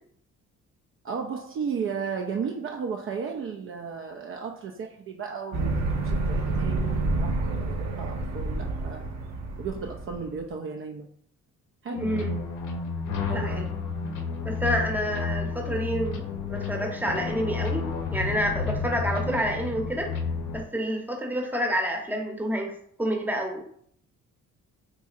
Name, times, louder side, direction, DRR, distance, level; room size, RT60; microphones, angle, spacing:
voice 1, 1.0-5.8 6.0-9.0 9.6-11.1 11.8-12.3 13.3-13.7, right 6 dB, 45° right, 2 dB, 0.4 m, -34 dB
sound 1, 5.5-10.3, right 2 dB, 60° right, 0.8 m, -28 dB
voice 2, 11.9-12.3 13.3-13.6 14.4-20.1 20.5-23.6, equal, 5° right, 2 dB, 0.8 m, -29 dB
sound 2, 12.0-20.6, left 5 dB, 80° left, 0.6 m, -31 dB
4.0 x 2.6 x 2.4 m, 0.63 s
cardioid pair, 90°, 30 cm